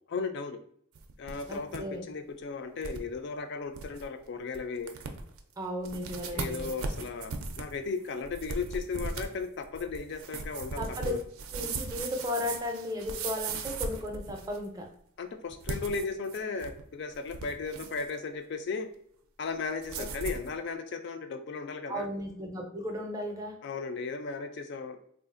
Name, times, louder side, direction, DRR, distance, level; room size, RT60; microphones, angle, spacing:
voice 1, 0.1-0.6 1.2-4.9 6.3-11.2 15.2-18.9 19.4-22.1 23.6-25.0, left 4 dB, 50° left, 7 dB, 0.3 m, -36 dB
sound 1, 1.0-1.8 2.1-2.2 2.8-3.0 3.4-3.5 3.7-4.0 4.5-4.6 4.9-5.4 5.8-14.7 15.5-16.8 17.1-18.1 19.8-20.5, right 4 dB, 75° right, 0.4 m, -38 dB
voice 2, 1.5-2.0 5.6-6.7 10.8-11.1 11.5-14.9 20.0-20.1 21.9-23.6, left 1 dB, 15° right, 2 dB, 0.4 m, -35 dB
3.5 x 2.4 x 2.4 m, 0.66 s
head